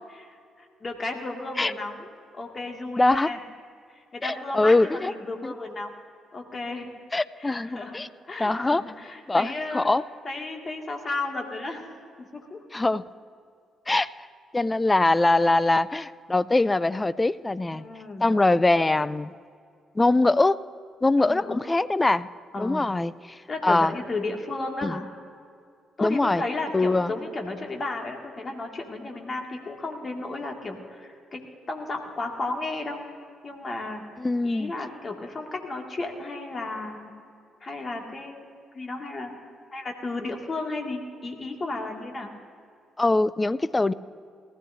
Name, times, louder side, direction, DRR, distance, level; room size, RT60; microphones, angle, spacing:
voice 1, 0.1-2.1 2.3-3.4 4.1-5.9 6.3-6.9 7.4-8.0 8.3-9.9 10.2-11.9 12.2-12.6 17.7-18.3 21.2-21.7 22.5-22.8 23.5-25.0 26.0-33.0 33.4-34.0 34.4-37.1 37.6-39.4 39.7-42.3, left 2 dB, 40° left, 2 dB, 2.1 m, -34 dB
voice 2, 3.0-3.3 4.2-5.1 5.4-5.5 7.1-8.1 8.4-8.8 9.3-10.0 12.7-13.0 13.9-14.1 14.5-17.8 18.2-19.3 20.0-20.6 21.0-22.3 22.6-23.9 24.8-24.9 26.0-26.4 26.7-27.1 34.2-34.7 43.0-43.9, left 2 dB, 20° left, 17 dB, 0.4 m, -22 dB
19.5 x 14.5 x 2.7 m, 2.3 s
hypercardioid pair, 45°, 0 cm